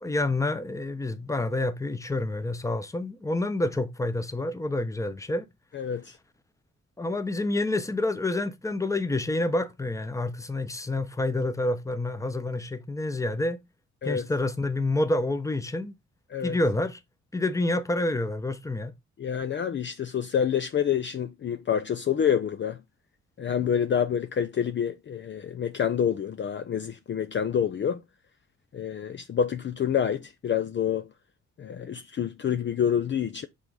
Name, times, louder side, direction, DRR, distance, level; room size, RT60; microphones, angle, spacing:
voice 1, 0.0-5.5 7.0-13.6 14.0-15.9 16.4-17.0 17.3-18.9, left 2 dB, 10° left, 0.9 m, -28 dB
voice 2, 5.7-6.2 14.0-14.2 16.3-16.6 19.2-22.8 23.4-28.0 28.7-31.1 31.6-33.5, left 8 dB, 40° left, 0.6 m, -27 dB
5.8 x 3.9 x 4.8 m
cardioid pair, 90°, 30 cm